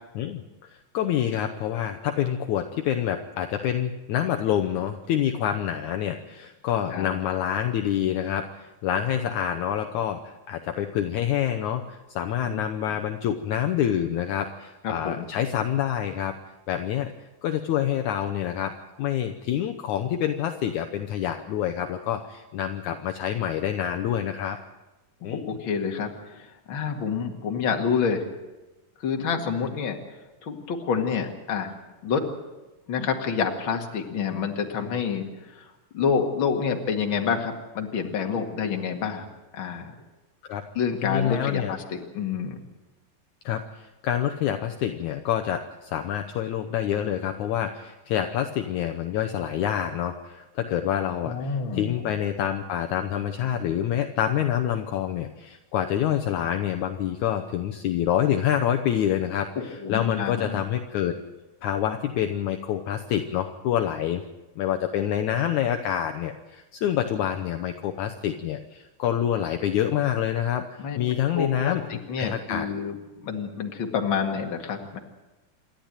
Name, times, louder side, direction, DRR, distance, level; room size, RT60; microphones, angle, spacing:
voice 1, 0.2-16.4 16.7-17.1 17.4-24.6 25.2-25.6 40.5-40.6 41.0-41.7 43.5-61.2 61.6-64.2 64.6-72.7, left 10 dB, 70° left, 5 dB, 2.2 m, -27 dB
voice 2, 14.8-15.3 25.2-28.3 29.0-30.0 30.4-31.7 32.0-32.3 32.9-35.3 35.6-35.7 35.9-39.3 39.5-39.9 40.7-42.6 51.2-52.0 59.6-60.6 70.8-71.0 71.3-73.0 73.2-75.0, left 6 dB, 45° left, 3 dB, 2.4 m, -28 dB
27.5 x 12.0 x 9.0 m, 1.1 s
omnidirectional pair, 3.8 m